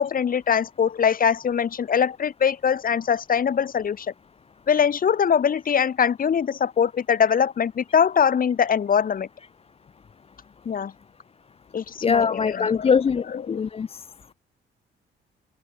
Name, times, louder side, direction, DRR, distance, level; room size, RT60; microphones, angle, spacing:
voice 1, 0.0-4.1 4.7-9.3 10.6-10.9 11.7-12.9 13.3-13.6, left 7 dB, 45° left, 1.6 m, -22 dB
voice 2, 12.0-14.0, left 6 dB, 30° left, 0.5 m, -22 dB
open air
cardioid pair, 90°, 20 cm